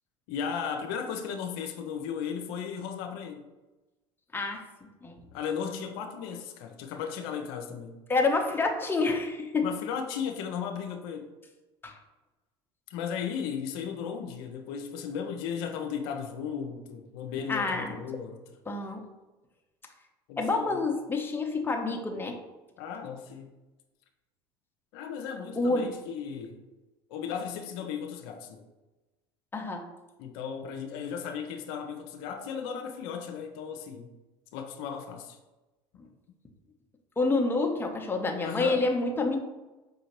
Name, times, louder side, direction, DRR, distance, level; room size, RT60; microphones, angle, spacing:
voice 1, 0.3-3.5 5.3-8.0 9.6-11.3 12.9-18.4 20.3-20.8 22.8-23.5 24.9-26.6 27.1-28.6 30.2-34.1 34.5-35.4 38.4-38.9, left 7 dB, 70° left, 4 dB, 0.5 m, -35 dB
voice 2, 4.3-4.6 5.0-5.2 8.1-9.7 11.8-12.0 17.5-18.0 18.7-19.0 20.4-22.4 25.6-25.9 29.5-29.9 37.2-39.4, left 3 dB, 15° left, 2 dB, 0.7 m, -28 dB
5.1 x 2.7 x 2.9 m, 1.1 s
hypercardioid pair, 80°, 13 cm